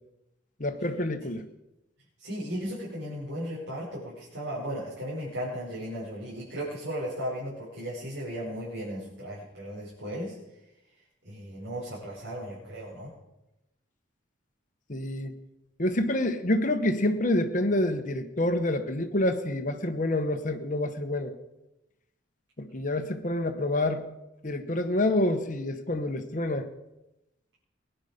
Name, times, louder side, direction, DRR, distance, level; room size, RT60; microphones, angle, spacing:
voice 1, 0.6-1.5 14.9-15.3 15.8-21.3 22.6-24.1 24.4-26.7, left 1 dB, 40° left, 7 dB, 1.1 m, -27 dB
voice 2, 2.2-10.4 11.2-13.1, equal, 85° right, -7 dB, 5.8 m, -36 dB
21.5 x 10.0 x 5.2 m, 0.95 s
head